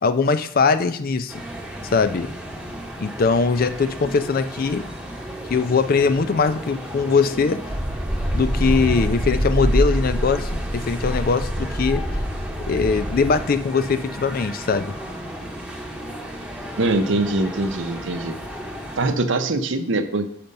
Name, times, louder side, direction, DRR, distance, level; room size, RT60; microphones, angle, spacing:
voice 1, 0.0-1.4 1.9-2.3 3.0-4.8 5.5-7.6 8.3-12.0 12.7-15.0, left 4 dB, 45° left, 11 dB, 0.4 m, -21 dB
sound 1, 1.3-19.1, equal, 5° right, 0.8 m, -35 dB
sound 2, 7.7-13.5, equal, 30° right, 1.2 m, -25 dB
voice 2, 16.8-18.3 19.0-20.3, right 2 dB, 60° right, 9 dB, 0.7 m, -22 dB
6.5 x 5.8 x 5.3 m, 0.70 s
head